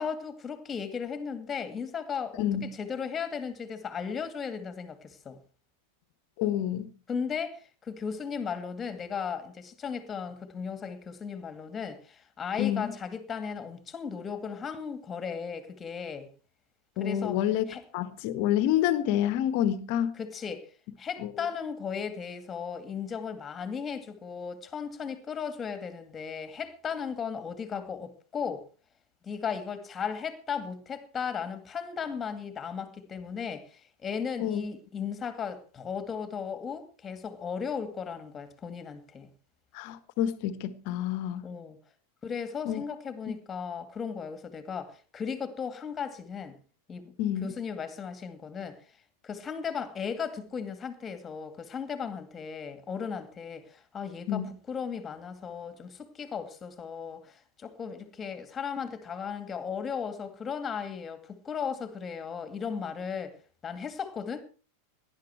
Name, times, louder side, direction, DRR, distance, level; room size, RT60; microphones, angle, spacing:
voice 1, 0.0-5.4 7.1-16.3 17.0-17.4 17.7-17.8 20.2-20.7 21.0-28.7 29.2-39.3 41.4-41.8 42.2-46.6 46.9-47.1 47.4-48.8 49.2-63.4 63.6-64.4, left 6 dB, 20° left, 2.4 m, -36 dB
voice 2, 2.4-2.7 6.4-6.9 12.6-12.9 17.0-17.7 17.9-20.1 21.2-21.3 34.4-34.6 39.7-41.4 42.6-42.8 43.3-43.4 47.2-47.5 54.3-54.5, left 11 dB, 45° left, 1.4 m, -28 dB
18.0 x 11.0 x 4.7 m
figure-of-eight pair, 90°, 0 cm